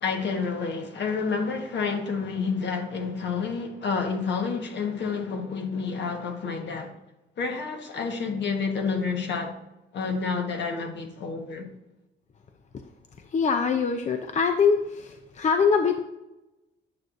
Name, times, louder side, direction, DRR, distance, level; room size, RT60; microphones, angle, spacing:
voice 1, 0.0-6.9 7.4-9.6 9.9-11.7, left 5 dB, 60° left, 1.4 m, -29 dB
voice 2, 13.3-16.0, left 5 dB, 35° left, 0.6 m, -23 dB
9.4 x 6.3 x 2.6 m
cardioid pair, 90°, 20 cm